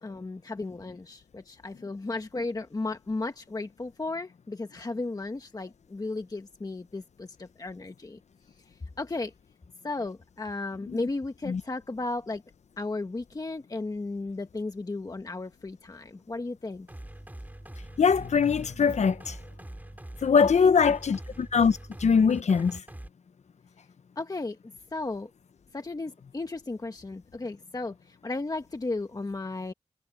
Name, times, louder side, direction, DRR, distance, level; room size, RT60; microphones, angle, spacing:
voice 1, 0.0-8.2 9.0-9.3 9.8-12.4 12.8-16.9 20.4-21.2 24.2-24.6 24.9-25.3 25.7-29.7, left 3 dB, 30° left, 1.3 m, -35 dB
sound 1, 16.9-23.1, right 1 dB, 15° right, 5.6 m, -43 dB
voice 2, 18.0-19.4 20.2-22.8, left 6 dB, 65° left, 0.8 m, -22 dB
wide cardioid pair, 100°, 12 cm